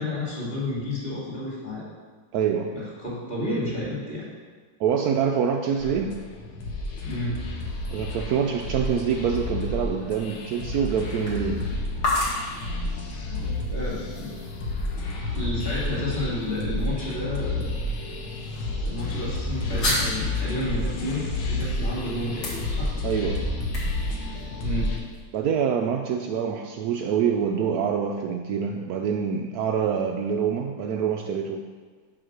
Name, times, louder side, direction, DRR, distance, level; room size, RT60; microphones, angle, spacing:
voice 1, 0.0-1.9 2.7-4.3 7.0-7.4 12.1-12.2 13.3-14.3 15.3-17.8 18.8-22.9 24.6-25.0, left 1 dB, 25° left, -7 dB, 2.6 m, -31 dB
voice 2, 2.3-2.8 4.8-6.1 7.9-11.6 23.0-23.5 25.3-31.6, right 7 dB, 90° right, 2 dB, 0.8 m, -25 dB
sound 1, 5.8-25.0, left 2 dB, 85° left, 1.8 m, -30 dB
sound 2, 7.4-25.2, left 1 dB, 55° left, 2.3 m, -36 dB
5.8 x 5.2 x 6.4 m, 1.5 s
omnidirectional pair, 2.2 m